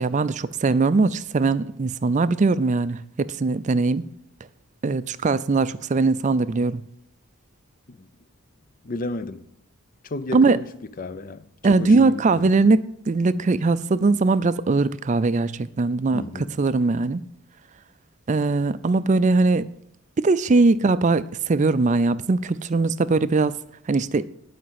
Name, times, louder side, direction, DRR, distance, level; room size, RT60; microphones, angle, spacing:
voice 1, 0.0-4.0 4.8-6.8 10.3-10.6 11.6-17.2 18.3-19.7 20.2-23.5 23.9-24.3, right 3 dB, 35° right, 0.4 m, -21 dB
voice 2, 8.8-9.4 10.0-10.7 11.0-12.5 16.1-16.5, left 2 dB, 40° left, 0.5 m, -33 dB
11.0 x 5.1 x 7.5 m
head